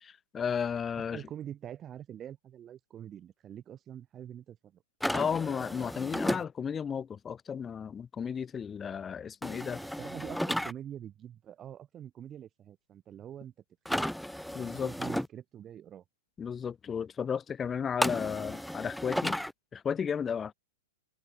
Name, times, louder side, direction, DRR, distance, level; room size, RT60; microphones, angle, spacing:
voice 1, 0.0-1.2 5.1-9.8 14.5-14.9 16.4-19.4 19.7-20.5, left 7 dB, 15° left, 0.9 m, -34 dB
voice 2, 1.1-4.8 9.8-13.5 13.9-14.0 14.7-16.0, right 10 dB, 25° right, 2.4 m, -45 dB
sound 1, 5.0-6.4 9.4-10.7 13.8-15.3 18.0-19.5, equal, ahead, 1.1 m, -33 dB
hypercardioid pair, 130°, 0 cm